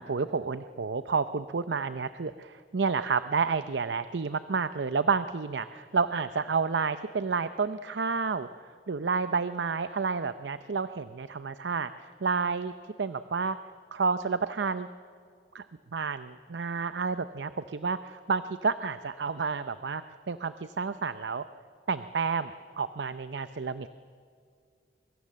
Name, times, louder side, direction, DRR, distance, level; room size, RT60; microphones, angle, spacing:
voice 1, 0.0-12.7 13.0-13.6 13.9-14.9 15.5-15.7 15.9-21.5 21.9-23.9, right 5 dB, 85° right, 13 dB, 0.6 m, -30 dB
24.0 x 23.0 x 7.5 m, 2.2 s
head